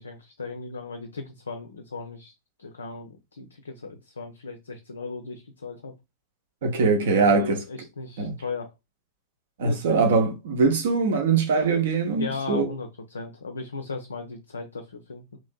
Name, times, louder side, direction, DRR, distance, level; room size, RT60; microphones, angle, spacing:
voice 1, 0.0-2.3 2.6-5.9 7.1-8.7 9.6-10.0 12.2-15.4, left 4 dB, 70° left, 0.3 m, -37 dB
voice 2, 6.6-7.6 8.2-8.3 9.6-12.6, right 4 dB, 60° right, 0.6 m, -22 dB
3.0 x 2.5 x 2.2 m
figure-of-eight pair, 90°, 0 cm